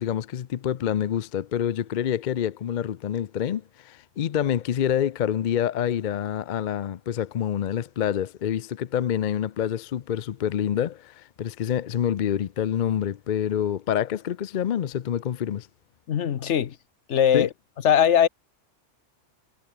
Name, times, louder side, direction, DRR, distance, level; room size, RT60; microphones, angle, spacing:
voice 1, 0.0-15.7 17.3-17.5, left 9 dB, 50° left, 0.6 m, -27 dB
voice 2, 16.1-16.8 17.1-17.5 17.8-18.3, left 9 dB, 75° left, 1.2 m, -20 dB
omnidirectional pair, 1.2 m